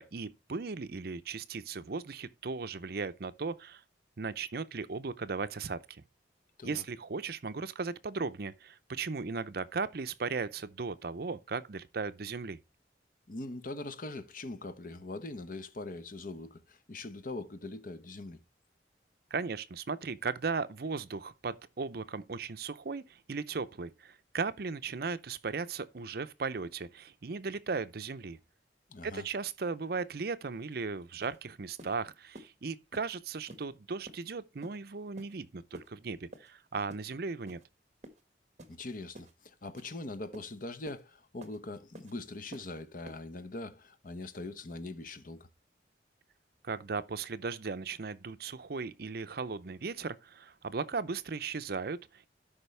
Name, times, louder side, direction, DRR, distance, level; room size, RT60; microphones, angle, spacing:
voice 1, 0.0-3.8 4.2-6.0 6.6-12.6 19.3-28.4 29.0-37.6 46.6-52.3, right 4 dB, 55° right, 0.6 m, -37 dB
voice 2, 13.3-18.4 28.9-29.2 38.7-45.5, left 2 dB, 50° left, 0.9 m, -42 dB
sound 1, 30.7-30.8 31.2-31.4 31.8-32.0 32.3-32.5 32.9-33.1 33.5-33.7 34.1-34.2 34.6-34.8 35.2-35.4 35.7-35.9 36.3-36.5 36.9-37.1 37.5-37.7 38.0-38.2 38.6-38.8 39.1-39.3 39.8-39.9 40.3-40.5 40.9-41.0 41.4-41.6 41.9-42.1 42.5-42.7 43.1-43.2, right 1 dB, 40° right, 1.5 m, -50 dB
12.5 x 5.5 x 3.3 m
head